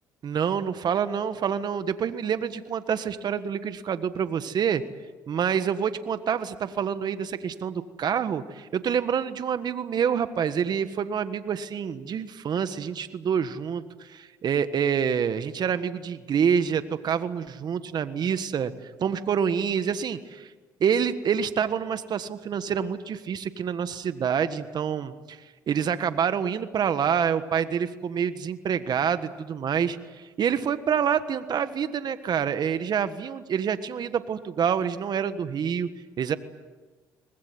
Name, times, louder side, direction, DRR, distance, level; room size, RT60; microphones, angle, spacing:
voice 1, 0.2-4.8 5.3-20.5 20.8-25.4 25.7-35.9 36.2-36.4, right 7 dB, 50° right, 11 dB, 1.5 m, -27 dB
24.0 x 20.5 x 9.4 m, 1.3 s
supercardioid pair, 70°, 9 cm